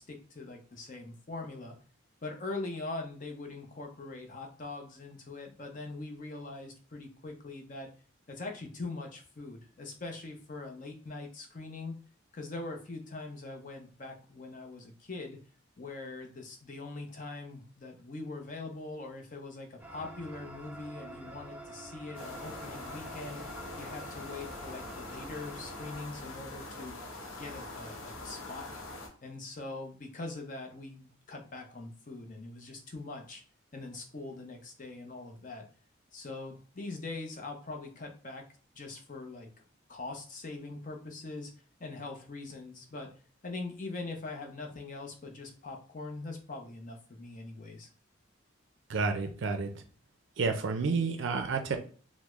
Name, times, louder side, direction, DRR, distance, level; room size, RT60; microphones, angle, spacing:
voice 1, 0.0-1.8 2.2-7.9 8.3-12.0 12.3-15.4 15.8-23.4 23.8-27.0 27.4-28.8 29.2-33.4 33.7-35.7 36.1-38.5 38.7-39.5 39.9-41.5 41.8-43.1 43.4-47.9, left 3 dB, 40° left, 3 dB, 0.6 m, -42 dB
sound 1, 19.8-26.0, right 1 dB, 5° right, 0.4 m, -47 dB
sound 2, 22.1-29.1, left 2 dB, 85° left, 0.8 m, -43 dB
voice 2, 48.9-49.8 50.4-51.8, right 4 dB, 65° right, 6 dB, 0.4 m, -30 dB
3.4 x 2.0 x 3.0 m, 0.43 s
head